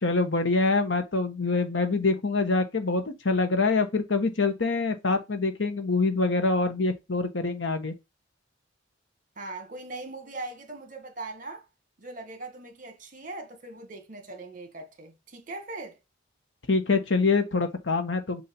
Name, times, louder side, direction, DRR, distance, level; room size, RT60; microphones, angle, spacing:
voice 1, 0.0-7.9 16.7-18.4, left 3 dB, 75° left, 1.2 m, -25 dB
voice 2, 9.4-11.6 12.0-16.0, right 2 dB, 45° right, 1.6 m, -40 dB
7.1 x 2.7 x 5.2 m
head